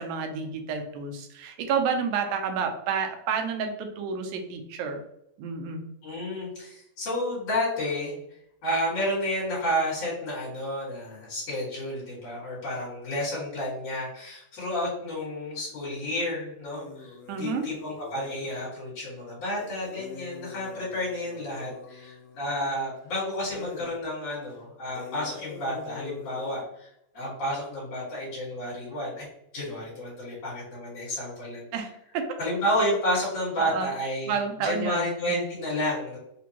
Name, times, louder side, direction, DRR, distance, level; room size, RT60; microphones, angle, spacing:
voice 1, 0.0-5.0 5.4-5.8 17.3-17.7 31.7-31.9 32.1-32.2 33.6-33.9 34.3-35.4, right 6 dB, 80° right, 5 dB, 2.0 m, -30 dB
voice 2, 6.0-8.2 8.6-29.3 29.5-31.7 32.4-36.2, left 1 dB, 55° left, -6 dB, 2.3 m, -31 dB
sound 1, 16.6-18.6 19.6-23.1 23.5-24.0 24.4-24.5 25.0-26.6, left 5 dB, 85° left, 2.1 m, -45 dB
5.1 x 2.2 x 2.8 m, 0.78 s
omnidirectional pair, 3.6 m